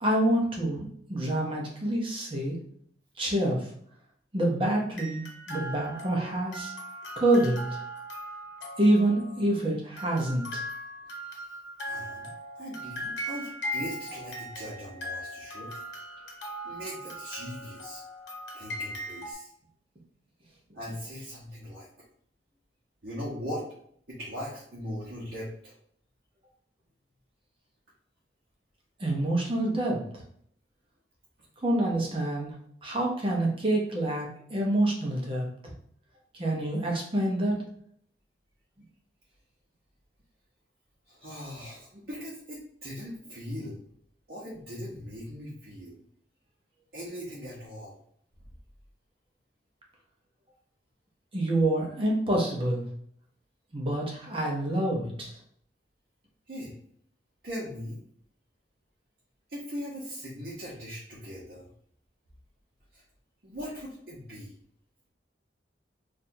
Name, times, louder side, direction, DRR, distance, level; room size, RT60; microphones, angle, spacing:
voice 1, 0.0-2.6 3.2-3.7 4.3-6.7 7.2-7.7 8.8-10.6 29.0-30.0 31.6-32.5 32.8-35.5 36.3-37.5 51.3-52.8 53.7-55.4, right 1 dB, 30° right, -1 dB, 0.8 m, -27 dB
sound 1, 5.0-9.6 10.0-19.3, equal, 85° left, 0.9 m, -39 dB
voice 2, 11.9-15.7 16.6-18.0 18.5-19.5 20.7-21.9 23.0-23.7 24.1-25.7 41.1-43.8 44.3-46.0 46.9-47.9 56.5-56.7 57.4-58.0 59.5-61.7 62.9-63.0 63.4-64.5, equal, 60° right, -8 dB, 1.0 m, -39 dB
4.3 x 2.6 x 2.7 m, 0.64 s
head